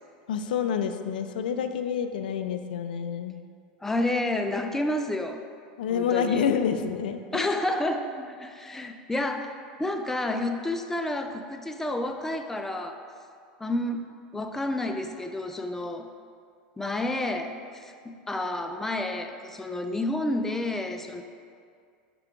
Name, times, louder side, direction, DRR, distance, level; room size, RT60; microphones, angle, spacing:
voice 1, 0.3-3.4 5.8-7.5, left 7 dB, 80° left, 8 dB, 0.4 m, -28 dB
voice 2, 3.8-5.4 5.9-6.5 7.3-13.0 13.6-14.1 14.3-16.1 16.8-21.2, left 1 dB, 10° left, 6 dB, 0.4 m, -30 dB
5.7 x 4.4 x 3.7 m, 2.3 s
hypercardioid pair, 100°, 5 cm